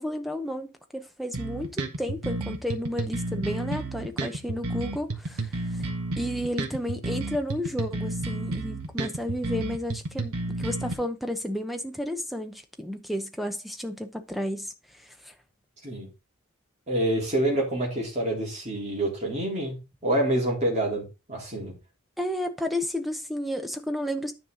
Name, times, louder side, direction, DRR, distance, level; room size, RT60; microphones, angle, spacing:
voice 1, 0.0-5.9 6.2-15.3 22.2-24.3, left 1 dB, ahead, 0.8 m, -32 dB
sound 1, 1.3-10.9, right 2 dB, 80° right, 1.5 m, -31 dB
voice 2, 16.9-19.8 20.0-21.7, right 1 dB, 30° right, 3.5 m, -27 dB
10.0 x 5.4 x 3.9 m
head